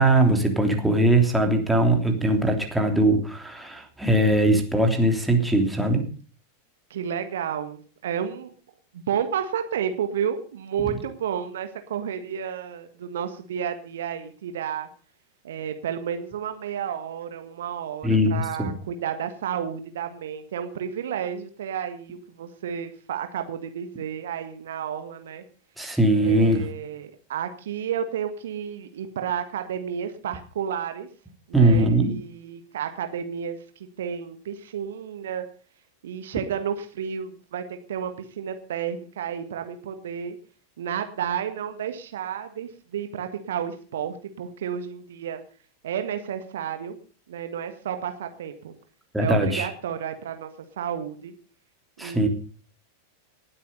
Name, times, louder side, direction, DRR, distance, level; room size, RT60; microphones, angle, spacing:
voice 1, 0.0-6.0 18.0-18.7 25.8-26.6 31.5-32.1 49.1-49.7 52.0-52.3, right 1 dB, 5° right, 3 dB, 3.2 m, -20 dB
voice 2, 6.9-8.5 8.9-14.9 15.4-25.4 26.2-31.1 31.5-33.6 34.0-35.5 36.0-40.4 40.8-45.4 45.8-47.0 47.3-48.7 49.2-50.5 50.8-51.3 52.0-52.3, right 8 dB, 60° right, 8 dB, 1.6 m, -31 dB
18.5 x 8.6 x 5.4 m, 0.39 s
figure-of-eight pair, 90°, 0 cm